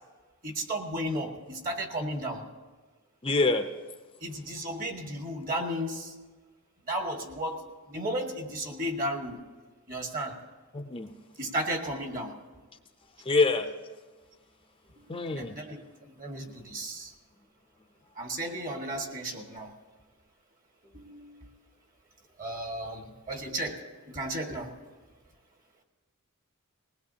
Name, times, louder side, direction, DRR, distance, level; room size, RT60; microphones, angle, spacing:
voice 1, 0.4-2.4 4.2-6.1 6.9-7.6 7.9-9.4 9.9-10.4 11.4-12.3 15.0-15.1 15.3-15.8 16.2-17.1 18.2-19.7 20.9-21.4 22.4-23.8 24.1-24.7, right 1 dB, 40° right, 2 dB, 1.7 m, -34 dB
voice 2, 3.2-3.6 10.7-11.1 13.3-13.7 15.1-15.6, left 3 dB, 25° left, 7 dB, 0.6 m, -25 dB
20.0 x 19.0 x 2.8 m, 1.3 s
head